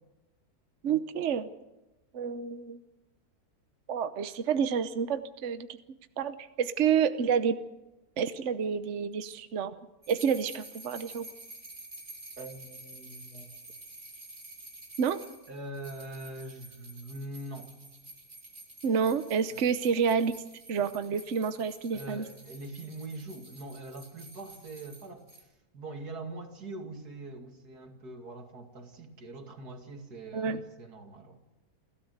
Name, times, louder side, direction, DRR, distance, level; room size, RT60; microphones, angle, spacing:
voice 1, 0.8-1.5 2.1-2.8 3.9-5.7 6.2-7.6 8.2-9.7 10.1-11.2 15.0-15.2 18.8-20.3 20.7-22.2 30.3-30.6, right 7 dB, 55° right, 11 dB, 1.2 m, -29 dB
sound 1, 10.0-25.4, right 2 dB, 35° right, 3.4 m, -49 dB
voice 2, 12.4-13.5 15.5-17.8 19.5-19.7 21.9-25.5 25.7-31.4, right 2 dB, 90° right, 5 dB, 3.0 m, -43 dB
29.0 x 13.0 x 8.0 m, 1.0 s
omnidirectional pair, 1.6 m